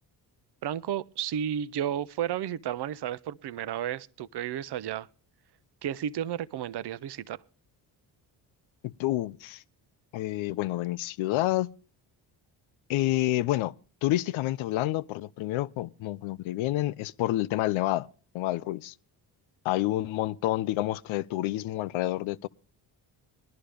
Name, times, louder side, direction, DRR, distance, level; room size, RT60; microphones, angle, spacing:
voice 1, 0.6-5.1 5.8-7.4, right 10 dB, 55° right, 0.7 m, -32 dB
voice 2, 8.8-9.6 10.1-11.7 12.9-13.7 14.0-18.1 18.3-18.9 19.6-22.5, left 15 dB, 75° left, 0.6 m, -28 dB
20.0 x 11.5 x 3.4 m
supercardioid pair, 55°, 48 cm